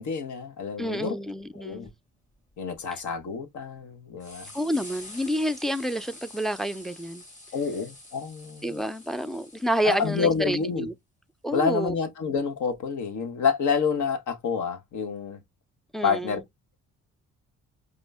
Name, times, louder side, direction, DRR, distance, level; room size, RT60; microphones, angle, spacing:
voice 1, 0.0-1.1 1.5-1.9 2.6-4.5 7.5-8.8 9.8-10.9 11.5-15.4 16.0-16.4, left 5 dB, 75° left, 1.1 m, -28 dB
voice 2, 0.8-1.9 4.5-7.2 8.6-10.9 11.4-11.9 15.9-16.4, equal, ahead, 0.3 m, -29 dB
sound 1, 1.3-1.4 1.7-1.9 2.5-3.2 3.8-3.9 4.2-10.6 12.7-12.8 14.1-14.2, left 1 dB, 25° left, 2.4 m, -47 dB
5.2 x 2.1 x 3.4 m
cardioid pair, 90°, 30 cm